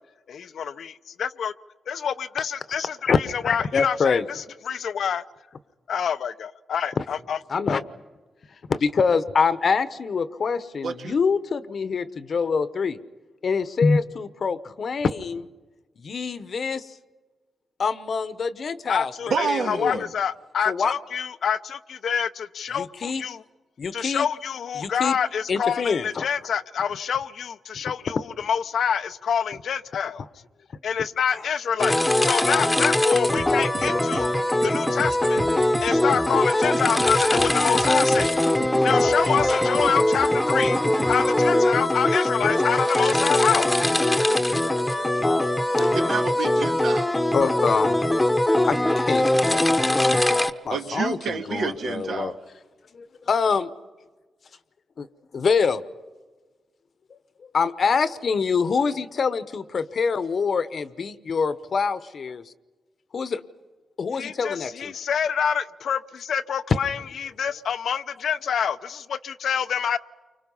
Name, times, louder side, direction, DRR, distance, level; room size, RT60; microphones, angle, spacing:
voice 1, 0.3-1.5 1.9-5.2 5.9-7.4 18.9-23.4 23.9-30.2 30.8-34.3 34.6-35.4 35.8-38.4 38.8-40.8 41.1-43.7 64.1-70.0, left 7 dB, 75° left, 12 dB, 0.7 m, -27 dB
voice 2, 2.7-3.2 3.4-4.3 7.0-7.1 7.5-7.8 8.7-13.0 13.4-15.5 16.0-16.9 17.8-20.0 20.7-20.9 22.8-23.2 23.8-24.3 24.8-25.2 25.5-26.3 32.2-32.4 32.9-33.0 37.3-37.4 38.7-39.8 43.5-43.6 44.0-45.6 45.8-45.9 47.3-48.0 48.7-48.8 49.1-50.2 50.6-52.3 52.9-53.7 55.0-55.1 55.3-55.8 57.5-62.4 63.1-63.4 64.0-64.9, left 5 dB, 55° left, 13 dB, 1.0 m, -25 dB
voice 3, 10.8-11.2 19.3-20.0 45.8-47.3 50.7-52.4, right 5 dB, 75° right, 4 dB, 1.9 m, -29 dB
sound 1, 31.8-50.5, left 1 dB, 10° left, 1.0 m, -21 dB
sound 2, 33.4-41.4, right 3 dB, 55° right, 1.8 m, -36 dB
29.5 x 25.0 x 5.6 m, 1.3 s
cardioid pair, 95°, 0 cm